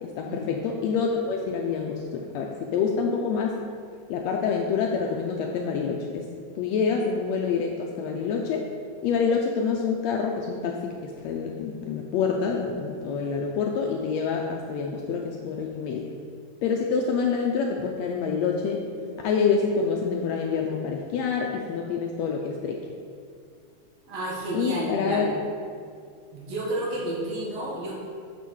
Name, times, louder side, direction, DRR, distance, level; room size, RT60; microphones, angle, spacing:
voice 1, 0.0-3.6 4.1-6.3 6.5-8.7 9.0-16.1 16.6-18.8 19.2-22.8 24.5-25.3, left 5 dB, 80° left, 1 dB, 1.6 m, -27 dB
voice 2, 24.1-25.2 26.3-28.0, right 1 dB, 60° right, -5 dB, 2.3 m, -30 dB
6.2 x 4.1 x 6.2 m, 2.2 s
omnidirectional pair, 3.4 m